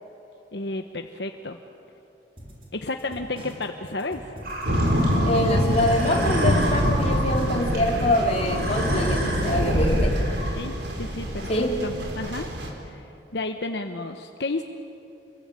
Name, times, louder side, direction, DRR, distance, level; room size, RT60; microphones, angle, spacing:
voice 1, 0.5-1.6 2.7-4.3 10.6-12.5 12.8-14.7, left 2 dB, 70° left, 5 dB, 1.2 m, -32 dB
sound 1, 2.4-10.3, equal, 30° right, 5.6 m, -43 dB
sound 2, 4.4-10.5, right 1 dB, 60° right, 7.5 m, -33 dB
sound 3, 4.6-12.7, equal, 85° right, 4.3 m, -25 dB
voice 2, 5.2-10.2 11.5-11.7, left 1 dB, 35° left, -1 dB, 4.2 m, -24 dB
28.5 x 23.0 x 8.9 m, 2.8 s
head